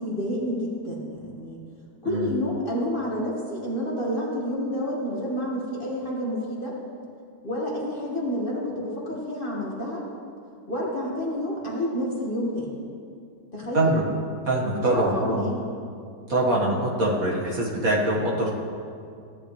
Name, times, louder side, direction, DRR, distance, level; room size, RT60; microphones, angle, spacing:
voice 1, 0.0-1.6 2.0-6.8 7.4-10.1 10.7-12.8 13.5-13.9 14.9-15.6, equal, 30° left, -4 dB, 2.0 m, -29 dB
voice 2, 14.5-15.6 16.3-18.5, right 1 dB, 55° right, -4 dB, 2.1 m, -23 dB
16.5 x 11.0 x 3.3 m, 2.4 s
omnidirectional pair, 1.8 m